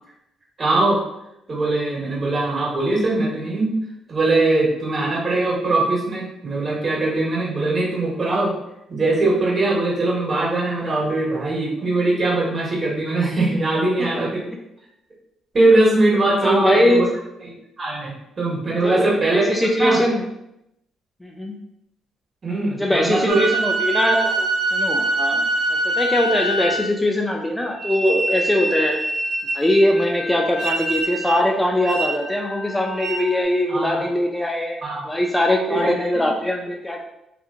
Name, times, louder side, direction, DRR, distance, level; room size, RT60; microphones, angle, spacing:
voice 1, 0.6-1.0 1.5-3.7 4.1-8.5 8.9-14.5 15.5-17.1 17.4-17.5 17.8-19.4 19.8-20.0 22.4-23.4 33.7-34.0 34.8-35.0 35.7-36.2, right 2 dB, 45° right, -5 dB, 1.3 m, -21 dB
voice 2, 16.4-17.1 18.8-20.2 21.2-21.6 22.8-29.0 29.5-37.0, left 1 dB, 10° left, 0 dB, 0.4 m, -21 dB
sound 1, 23.3-27.1 27.8-33.4, right 2 dB, 85° right, 0.6 m, -25 dB
2.8 x 2.4 x 2.4 m, 0.84 s
supercardioid pair, 60°, 0 cm